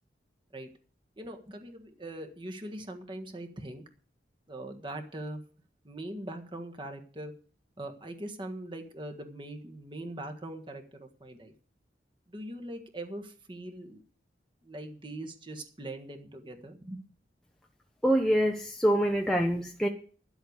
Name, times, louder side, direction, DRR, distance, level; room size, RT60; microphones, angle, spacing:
voice 1, 1.2-3.8 4.5-5.4 5.8-7.3 7.8-11.5 12.3-14.0 14.6-17.0, right 1 dB, 25° right, 4 dB, 1.6 m, -41 dB
voice 2, 18.0-19.9, equal, 5° left, 2 dB, 0.7 m, -25 dB
11.0 x 8.0 x 8.0 m, 0.42 s
head